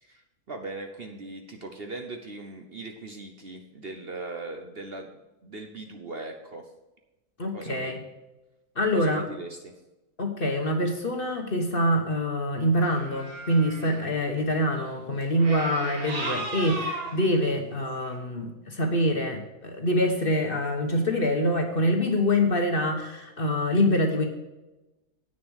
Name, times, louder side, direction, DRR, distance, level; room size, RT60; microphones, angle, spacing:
voice 1, 0.0-6.7 7.5-8.0 8.9-9.7, right 2 dB, 45° right, 4 dB, 1.0 m, -39 dB
voice 2, 7.4-8.0 8.8-9.2 10.2-24.3, left 1 dB, 40° left, 4 dB, 1.3 m, -25 dB
sound 1, 12.9-14.0 15.4-17.2 18.1-18.2, right 2 dB, 70° right, 2.4 m, -35 dB
9.1 x 6.8 x 6.3 m, 1.0 s
omnidirectional pair, 1.6 m